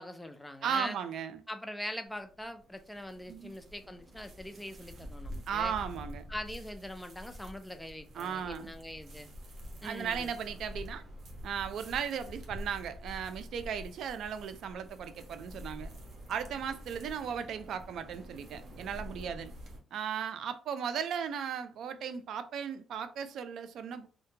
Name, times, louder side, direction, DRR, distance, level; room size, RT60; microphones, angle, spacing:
voice 1, 0.0-1.0 1.5-5.7 6.3-9.3 9.8-10.3, left 1 dB, 10° left, 0.4 m, -42 dB
voice 2, 0.6-1.4 3.3-3.5 5.5-6.2 8.1-8.7 9.8-11.0 11.4-15.9 16.3-19.5 19.9-24.1, right 7 dB, 70° right, 0.4 m, -36 dB
sound 1, 2.1-19.8, equal, 55° right, 0.8 m, -47 dB
2.7 x 2.1 x 2.6 m
cardioid pair, 90°, 0 cm